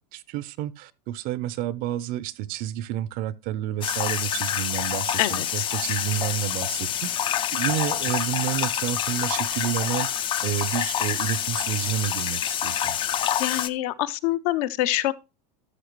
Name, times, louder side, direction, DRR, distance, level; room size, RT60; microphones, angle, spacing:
voice 1, 0.1-13.0, right 13 dB, 45° right, 0.6 m, -30 dB
sound 1, 3.8-13.7, left 10 dB, 25° left, 0.4 m, -27 dB
voice 2, 5.2-5.7 13.4-15.1, left 15 dB, 60° left, 0.7 m, -25 dB
13.0 x 5.9 x 3.0 m
supercardioid pair, 150°, 21 cm